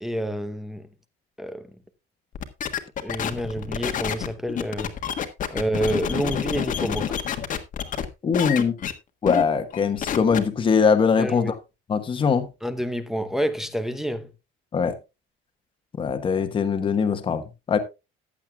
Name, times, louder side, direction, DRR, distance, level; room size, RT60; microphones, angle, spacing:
voice 1, 0.0-0.8 1.4-1.7 3.0-4.9 5.5-7.2 11.2-11.5 12.6-14.3, right 1 dB, ahead, 0.8 m, -28 dB
sound 1, 2.3-8.1 8.3-8.9 9.3-9.4 9.7-10.4, left 9 dB, 40° left, 1.4 m, -28 dB
voice 2, 8.2-8.7 9.2-11.5 11.9-12.5 14.7-15.0 16.0-17.4 17.7-17.8, left 6 dB, 25° left, 1.3 m, -21 dB
15.0 x 10.0 x 2.3 m
cardioid pair, 165°, 21 cm